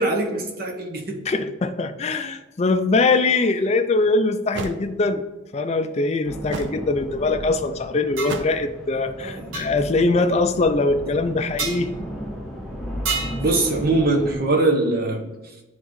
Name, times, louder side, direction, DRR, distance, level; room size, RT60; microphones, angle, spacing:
voice 1, 0.0-1.2 9.2-9.5 9.8-10.0 13.4-15.3, right 2 dB, 50° right, 2 dB, 1.0 m, -22 dB
voice 2, 1.3-5.2 5.5-11.9, left 3 dB, 35° left, 8 dB, 0.4 m, -22 dB
sound 1, 3.6-3.7 4.5-4.8 6.5-6.8 8.2-8.7, right 3 dB, 65° right, 0.6 m, -32 dB
sound 2, 6.2-14.4, equal, ahead, 0.9 m, -35 dB
sound 3, 8.2-8.4 9.5-9.7 11.6-11.8 13.1-13.4, right 4 dB, 85° right, 0.9 m, -27 dB
9.1 x 3.7 x 3.1 m, 1.1 s
head